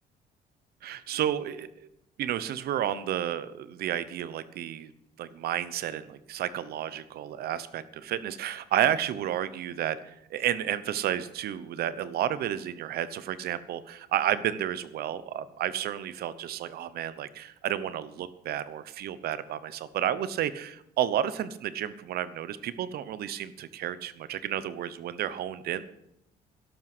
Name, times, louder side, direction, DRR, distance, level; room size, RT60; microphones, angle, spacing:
voice 1, 0.8-1.9 2.2-4.9 5.2-25.8, right 11 dB, 65° right, 15 dB, 1.0 m, -31 dB
12.0 x 12.0 x 6.2 m, 0.82 s
cardioid pair, 110°, 17 cm